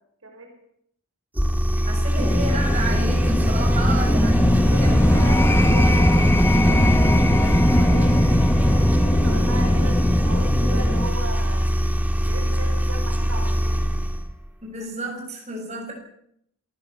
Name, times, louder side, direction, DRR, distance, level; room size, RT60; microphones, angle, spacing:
voice 1, 0.2-0.5 4.7-11.7 12.3-13.9, right 1 dB, 70° right, 3 dB, 5.5 m, -37 dB
sound 1, 1.3-14.3, equal, 10° right, 2.1 m, -23 dB
voice 2, 1.9-5.2 14.6-15.9, right 2 dB, 30° right, 1 dB, 7.0 m, -31 dB
sound 2, 2.2-11.1, left 1 dB, 10° left, 1.2 m, -19 dB
26.5 x 16.5 x 7.5 m, 0.73 s
head